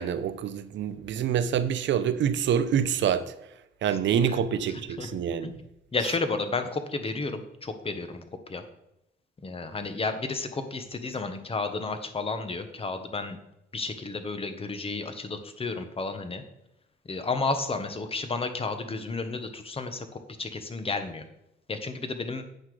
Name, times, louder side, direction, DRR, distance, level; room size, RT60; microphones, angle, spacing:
voice 1, 0.0-3.3 3.8-5.5, right 8 dB, 70° right, 0.8 m, -26 dB
voice 2, 3.9-4.4 4.7-5.6 5.9-8.6 9.4-13.4 13.7-16.4 17.0-21.2 21.7-22.4, left 3 dB, 30° left, 1.3 m, -32 dB
8.9 x 5.8 x 4.9 m
cardioid pair, 90°, 20 cm